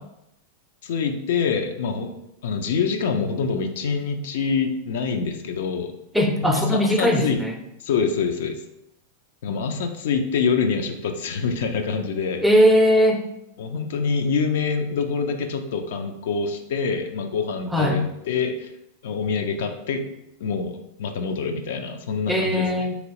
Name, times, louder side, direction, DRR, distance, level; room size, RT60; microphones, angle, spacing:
voice 1, 0.8-2.1 2.4-5.9 6.5-7.4 7.8-8.6 9.4-12.4 13.6-18.7 19.0-20.1 20.4-22.9, left 5 dB, 60° left, 5 dB, 0.4 m, -25 dB
voice 2, 6.1-7.6 12.4-13.2 17.7-18.0 22.3-23.0, equal, ahead, 2 dB, 0.5 m, -19 dB
2.9 x 2.9 x 2.9 m, 0.83 s
figure-of-eight pair, 95°, 0 cm